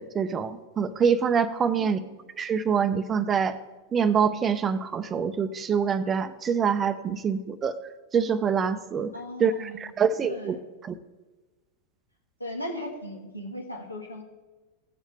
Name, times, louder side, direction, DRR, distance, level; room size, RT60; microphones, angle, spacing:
voice 1, 0.0-2.0 2.4-3.6 3.9-7.7 8.1-9.1 9.4-10.6 10.8-10.9, right 6 dB, 20° right, 12 dB, 0.6 m, -25 dB
voice 2, 1.6-1.9 9.1-9.8 10.2-10.6 12.4-14.2, left 1 dB, 85° left, 0 dB, 2.0 m, -37 dB
17.0 x 7.2 x 3.4 m, 1.2 s
figure-of-eight pair, 90°, 0 cm